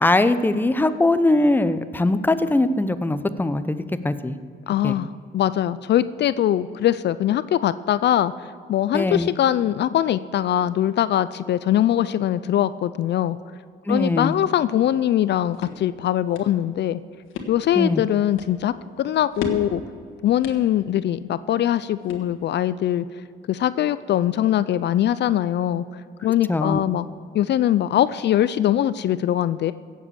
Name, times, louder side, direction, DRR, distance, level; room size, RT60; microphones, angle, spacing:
voice 1, 0.0-4.4 4.8-5.0 8.9-9.3 13.9-14.3 17.7-18.0 26.5-26.8, left 2 dB, 10° left, 11 dB, 0.7 m, -21 dB
voice 2, 4.7-13.4 13.9-17.0 17.5-19.8 20.2-23.1 23.5-25.8 26.2-27.0 27.3-29.7, left 11 dB, 60° left, 15 dB, 0.4 m, -22 dB
sound 1, 15.1-22.7, left 5 dB, 90° left, 1.6 m, -38 dB
16.5 x 7.5 x 7.0 m, 2.3 s
cardioid pair, 90°, 20 cm